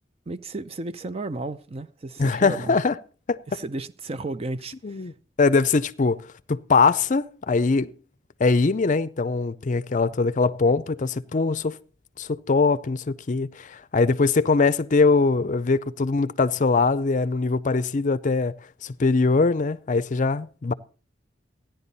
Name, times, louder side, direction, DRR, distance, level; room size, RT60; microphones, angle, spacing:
voice 1, 0.3-2.8 3.5-5.1, right 2 dB, 30° right, 0.5 m, -33 dB
voice 2, 2.2-2.9 3.3-3.4 4.8-5.1 5.4-7.9 8.4-11.8 12.2-18.5 18.8-20.7, left 4 dB, 45° left, 0.5 m, -22 dB
14.5 x 10.5 x 4.1 m
head